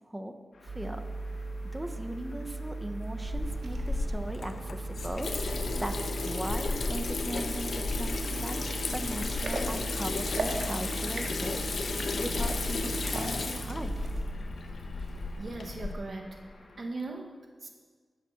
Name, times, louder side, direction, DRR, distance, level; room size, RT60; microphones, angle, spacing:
sound 1, 0.5-16.9, left 2 dB, 75° left, 2.2 m, -55 dB
voice 1, 0.6-1.0 1.3-1.4 1.6-5.3 5.8-11.7 12.2-13.9, right 1 dB, 10° right, 6 dB, 0.9 m, -38 dB
sound 2, 0.7-14.2, right 2 dB, 75° right, 1.6 m, -37 dB
Water tap faucet / Sink (filling or washing), 3.3-15.9, left 3 dB, 60° left, 1.0 m, -34 dB
voice 2, 15.4-16.4 16.8-17.7, right 3 dB, 45° right, 3 dB, 1.2 m, -39 dB
12.0 x 8.3 x 6.4 m, 1.5 s
wide cardioid pair, 170°, 0 cm